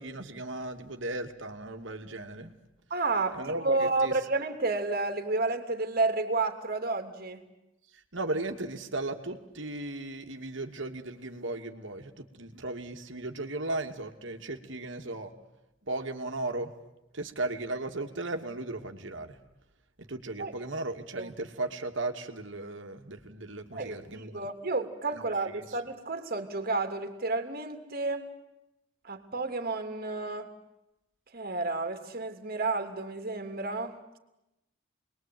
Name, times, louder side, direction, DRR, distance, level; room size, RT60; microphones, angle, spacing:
voice 1, 0.0-2.5 3.3-4.1 8.1-15.3 15.8-16.7 17.1-19.4 20.0-24.5 25.1-25.8, right 2 dB, 65° right, 5 dB, 2.6 m, -36 dB
voice 2, 2.9-7.5 20.4-20.7 21.2-21.3 23.7-28.3 29.1-30.5 31.3-34.2, right 3 dB, 50° right, 6 dB, 3.0 m, -31 dB
29.0 x 22.0 x 9.4 m, 0.91 s
head